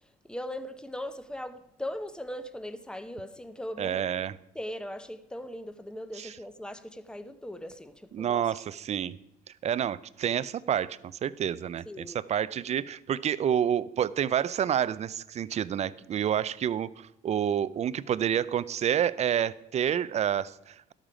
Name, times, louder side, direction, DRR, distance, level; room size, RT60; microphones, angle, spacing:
voice 1, 0.3-4.3 4.5-8.4 11.9-12.2, left 1 dB, 5° left, 0.8 m, -39 dB
voice 2, 3.8-4.3 6.1-6.4 8.1-9.2 9.6-20.9, right 9 dB, 40° right, 0.5 m, -29 dB
12.0 x 9.0 x 5.0 m
cardioid pair, 110°, 17 cm